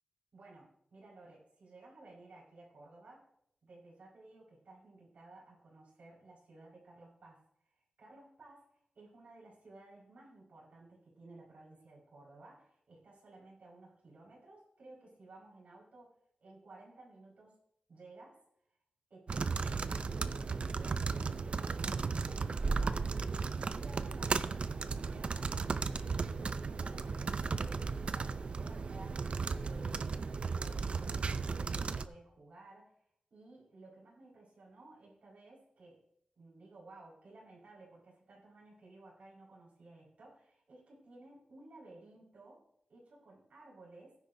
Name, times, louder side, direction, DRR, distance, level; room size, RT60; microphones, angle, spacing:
voice 1, 0.3-3.3 3.6-16.1 16.4-17.6 17.9-18.4 19.1-21.2 21.5-23.4 23.7-24.5 24.8-36.0 36.3-42.6 42.9-44.2, right 2 dB, 75° right, -6 dB, 4.8 m, -56 dB
sound 1, 19.3-32.1, right 4 dB, 55° right, 0.5 m, -35 dB
16.5 x 10.0 x 2.7 m, 0.74 s
wide cardioid pair, 115°, 2 cm